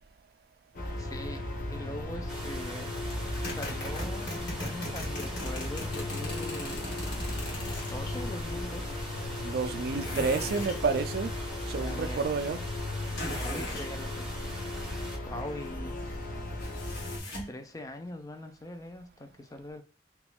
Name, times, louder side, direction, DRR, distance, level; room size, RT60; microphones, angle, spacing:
sound 1, 0.7-17.2, left 1 dB, 50° left, 0.8 m, -36 dB
voice 1, 1.0-2.9 3.5-6.8 7.8-9.0 11.8-12.2 13.2-14.4 15.3-16.0 17.5-19.8, left 1 dB, 20° left, 0.4 m, -42 dB
sound 2, 2.3-15.2, right 1 dB, 5° right, 1.0 m, -44 dB
sound 3, 3.1-8.1 10.0-10.8 13.1-13.9 16.6-17.6, left 1 dB, 75° left, 1.6 m, -38 dB
voice 2, 9.4-12.6, right 4 dB, 60° right, 0.4 m, -30 dB
3.5 x 3.0 x 2.2 m
head